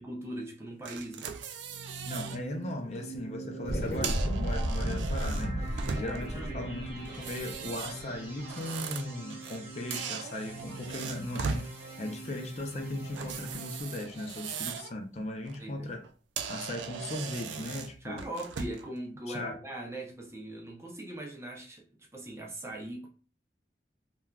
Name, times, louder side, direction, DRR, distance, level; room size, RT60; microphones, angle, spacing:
voice 1, 0.0-1.4 5.8-6.7 15.6-16.0 18.0-23.1, right 1 dB, 15° right, 0.5 m, -41 dB
sound 1, 0.9-2.4 2.8-3.1 3.8-6.4 7.1-9.6 9.9-11.7 13.1-14.9 15.3-15.6 16.0-16.1 16.4-18.9, right 6 dB, 90° right, 0.3 m, -39 dB
sound 2, 1.5-14.0, right 3 dB, 35° right, 1.2 m, -44 dB
voice 2, 2.1-16.0 16.5-18.2 19.3-19.6, left 1 dB, 40° left, 0.4 m, -38 dB
sound 3, 3.6-8.3, equal, 60° left, 0.9 m, -33 dB
3.3 x 2.3 x 2.3 m
head